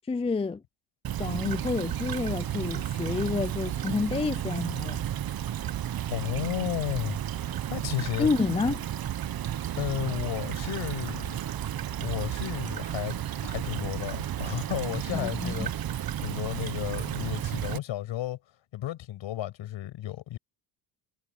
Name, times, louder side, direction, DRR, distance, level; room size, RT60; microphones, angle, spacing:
voice 1, 0.1-0.6 1.2-5.0 8.2-8.8 15.1-15.7, left 4 dB, 15° left, 0.5 m, -29 dB
Stream / Trickle dribble, 1.0-17.8, right 11 dB, 45° right, 1.4 m, -33 dB
voice 2, 6.1-8.3 9.8-11.4 12.0-15.7 16.2-18.4 18.7-20.4, left 13 dB, 65° left, 7.1 m, -33 dB
supercardioid pair, 85°, 48 cm